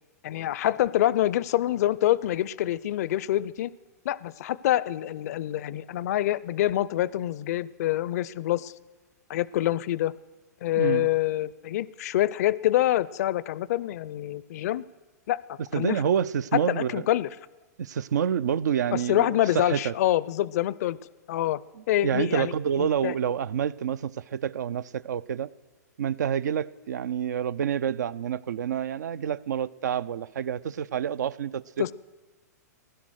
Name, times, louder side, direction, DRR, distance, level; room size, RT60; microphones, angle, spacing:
voice 1, 0.2-3.7 4.0-8.7 9.3-10.1 10.6-14.8 15.3-16.0 16.5-17.3 18.9-21.0 21.3-21.6 21.9-23.1 31.8-31.9, left 13 dB, 65° left, 0.4 m, -26 dB
voice 2, 10.8-11.1 15.7-17.0 17.8-19.9 22.0-25.5 26.0-31.8, right 8 dB, 80° right, 0.4 m, -28 dB
16.0 x 11.5 x 6.4 m
hypercardioid pair, 115°, 9 cm